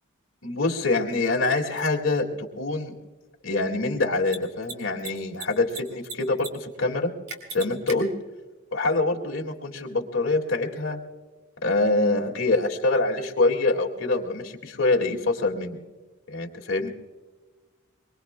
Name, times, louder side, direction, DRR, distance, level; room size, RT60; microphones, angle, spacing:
voice 1, 0.4-2.9 3.4-7.1 7.5-8.1 8.7-11.0 11.6-15.8 16.3-16.9, left 2 dB, 65° left, 0 dB, 2.1 m, -25 dB
Mechanisms, 1.8-1.9 4.2-4.4 4.6-4.7 5.0-5.8 6.0-6.5 6.7-6.8 7.3-8.0, right 4 dB, 70° right, 3.7 m, -35 dB
23.5 x 23.5 x 2.2 m, 1.3 s
head